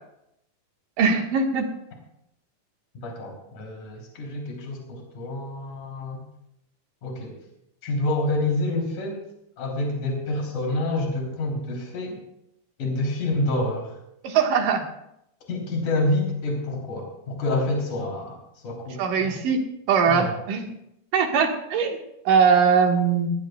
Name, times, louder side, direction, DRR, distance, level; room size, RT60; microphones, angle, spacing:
voice 1, 1.0-1.7 14.2-14.8 19.0-19.6 19.9-20.7 21.1-22.0 22.3-23.3, right 6 dB, 65° right, 3 dB, 3.0 m, -21 dB
voice 2, 2.9-6.2 7.0-7.4 7.8-9.2 9.6-12.2 12.8-14.0 15.5-18.4 18.6-19.4 20.1-20.4, left 2 dB, 55° left, -1 dB, 4.7 m, -28 dB
19.5 x 18.5 x 2.3 m, 0.80 s
omnidirectional pair, 4.2 m